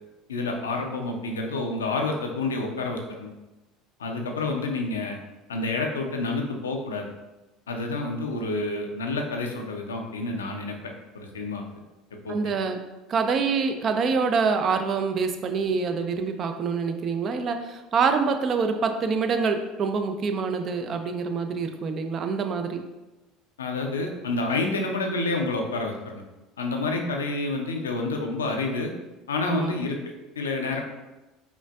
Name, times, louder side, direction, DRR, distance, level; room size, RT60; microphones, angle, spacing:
voice 1, 0.3-3.3 4.0-5.2 5.5-7.1 7.7-10.7 11.1-11.6 12.2-12.5 23.6-26.2 26.6-28.9 29.3-30.8, left 3 dB, 85° left, 2 dB, 0.4 m, -29 dB
voice 2, 12.3-12.8 13.1-22.8 26.9-27.1 29.4-29.8, right 5 dB, 45° right, 6 dB, 0.4 m, -26 dB
5.0 x 2.5 x 2.3 m, 1.1 s
hypercardioid pair, 70°, 0 cm